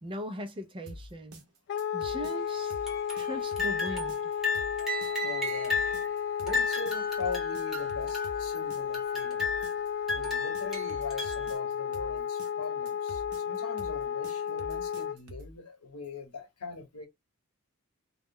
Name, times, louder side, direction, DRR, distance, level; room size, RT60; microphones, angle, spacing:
voice 1, 0.0-1.4 1.9-2.7 3.1-4.3, left 1 dB, 25° right, 0.5 m, -39 dB
sound 1, 0.9-15.6, equal, 75° right, 0.7 m, -47 dB
Wind instrument woodwind instrument, 1.7-15.2, left 8 dB, 50° left, 0.3 m, -33 dB
sound 2, 2.9-3.3 3.6-4.2 4.4-6.1 6.5-8.6 8.9-9.8 10.1-11.5, left 3 dB, ahead, 0.9 m, -33 dB
voice 2, 5.2-5.8 6.4-9.5 10.1-17.1, left 4 dB, 85° left, 0.9 m, -41 dB
2.3 x 2.0 x 3.5 m
head